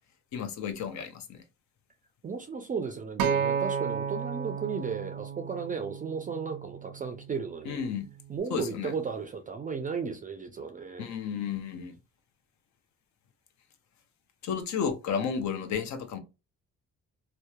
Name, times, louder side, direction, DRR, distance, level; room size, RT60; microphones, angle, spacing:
voice 1, 0.3-1.4 7.6-8.1 8.5-8.9 11.0-12.0 14.4-16.2, left 7 dB, 65° left, 0.6 m, -32 dB
voice 2, 2.2-7.8 8.3-11.1, right 5 dB, 30° right, 0.4 m, -35 dB
Acoustic guitar, 3.2-7.5 8.3-8.4, right 7 dB, 85° right, 0.5 m, -33 dB
2.8 x 2.1 x 2.2 m
cardioid pair, 90°, 30 cm